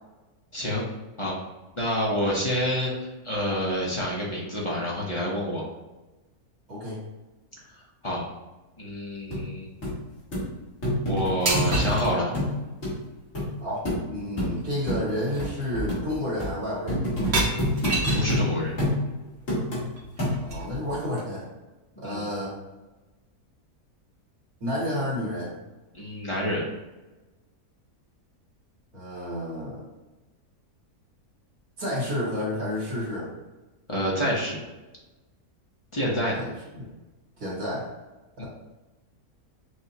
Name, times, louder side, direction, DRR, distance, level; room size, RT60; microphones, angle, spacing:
voice 1, 0.5-0.8 1.2-1.3 1.8-5.6 8.0-8.2 8.8-9.7 11.1-12.3 17.7-18.7 22.0-22.2 25.9-26.6 33.9-34.6 35.9-36.4 38.4-38.5, equal, 30° left, -5 dB, 0.6 m, -28 dB
voice 2, 6.7-7.0 13.6-17.0 20.5-21.5 22.0-22.6 24.6-25.5 28.9-29.8 31.8-33.3 36.3-36.9 37.4-37.9 38.4-38.5, left 1 dB, 85° right, -8 dB, 2.1 m, -30 dB
sound 1, 9.3-9.4 9.8-9.9 10.3-10.4 10.8-11.9 12.3-12.5 12.8-12.9 13.3-13.5 13.8-14.0 14.4-14.5 14.9-15.0 15.4-15.5 15.9-16.0 16.4-16.5 16.9-18.4 18.8-19.0 19.5-19.8 20.2-20.6 21.2-21.3, left 1 dB, 55° left, 1.8 m, -26 dB
sound 2, 11.5-12.1 14.1-14.2 14.6-14.9 15.3-15.5 15.7-16.3 17.2-18.4 20.0-21.0, right 2 dB, 50° right, 1.0 m, -29 dB
5.8 x 2.3 x 2.8 m, 1.1 s
omnidirectional pair, 1.6 m